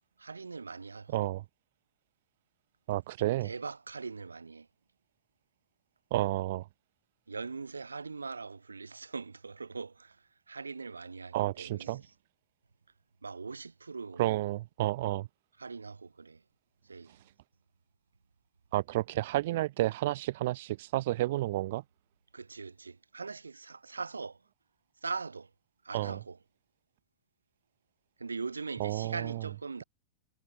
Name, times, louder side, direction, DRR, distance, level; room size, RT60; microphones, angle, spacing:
voice 1, 0.2-1.2 3.4-4.7 7.3-12.0 13.2-14.2 15.6-16.4 16.9-17.1 22.3-24.4 25.0-25.5 25.8-26.4 28.2-29.8, right 4 dB, 80° right, 3.6 m, -41 dB
voice 2, 1.1-1.4 2.9-3.5 6.1-6.7 11.3-12.0 14.2-15.3 17.1-17.2 18.7-21.8 25.9-26.2 28.8-29.4, right 16 dB, 55° right, 1.4 m, -31 dB
figure-of-eight pair, 90°, 0 cm